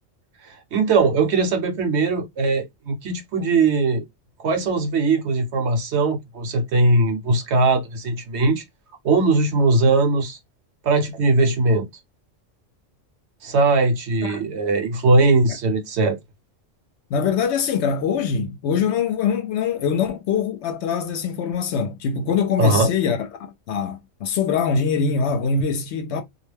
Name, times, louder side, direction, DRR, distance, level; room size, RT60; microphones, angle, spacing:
voice 1, 0.4-4.0 4.4-8.6 9.0-10.4 10.8-11.9 13.4-16.2 22.6-22.9, right 3 dB, 65° right, 0.9 m, -20 dB
voice 2, 17.1-23.3 23.7-26.2, left 6 dB, 70° left, 0.8 m, -23 dB
2.4 x 2.1 x 3.1 m
omnidirectional pair, 1.3 m